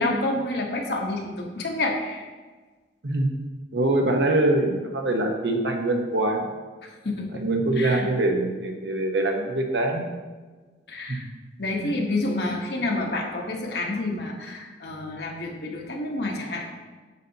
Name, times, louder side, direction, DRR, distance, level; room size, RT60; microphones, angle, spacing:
voice 1, 0.0-2.3 6.8-7.4 7.8-8.1 10.9-11.3 11.6-16.6, left 2 dB, 65° left, 0 dB, 1.2 m, -29 dB
voice 2, 3.7-6.5 7.3-10.1 11.1-11.2 11.8-12.0, right 2 dB, 80° right, 2 dB, 1.0 m, -24 dB
8.2 x 6.8 x 2.8 m, 1.3 s
head